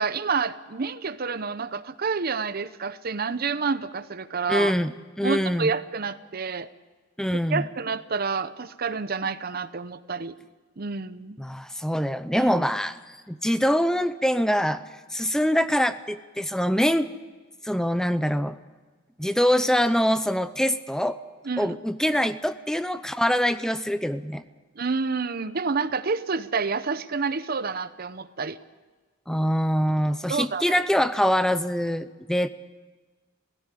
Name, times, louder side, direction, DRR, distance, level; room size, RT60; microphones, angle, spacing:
voice 1, 0.0-4.7 5.2-6.7 7.3-10.3 10.8-11.4 12.3-12.5 21.4-21.8 24.8-28.6 30.3-30.8, right 4 dB, 50° right, 14 dB, 0.8 m, -29 dB
voice 2, 4.5-4.9 5.2-5.7 7.2-7.6 11.4-14.8 15.1-17.1 17.6-18.5 19.2-21.2 21.6-24.4 29.3-32.5, equal, 5° left, 12 dB, 0.5 m, -24 dB
17.0 x 16.0 x 9.8 m, 1.3 s
head